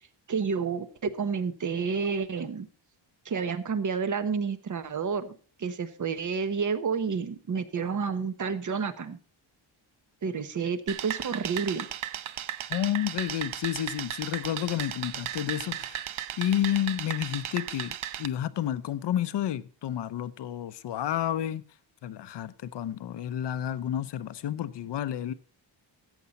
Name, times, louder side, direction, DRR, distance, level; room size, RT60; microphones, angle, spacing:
voice 1, 0.3-2.7 3.2-5.3 5.6-9.2 10.2-11.9, right 5 dB, 40° right, 1.1 m, -30 dB
sound 1, 10.9-18.3, right 11 dB, 85° right, 0.8 m, -36 dB
voice 2, 12.7-16.1 16.4-21.6 22.0-25.3, left 11 dB, 60° left, 0.8 m, -30 dB
14.0 x 8.2 x 4.1 m
cardioid pair, 120°, 48 cm